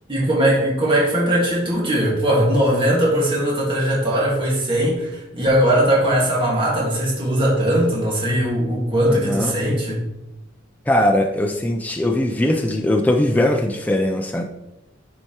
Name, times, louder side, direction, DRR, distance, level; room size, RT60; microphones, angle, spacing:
voice 1, 0.1-10.0, right 1 dB, 25° right, -5 dB, 1.7 m, -19 dB
voice 2, 9.1-9.6 10.9-14.4, left 1 dB, 10° left, 3 dB, 0.4 m, -20 dB
9.8 x 4.5 x 2.9 m, 0.95 s
head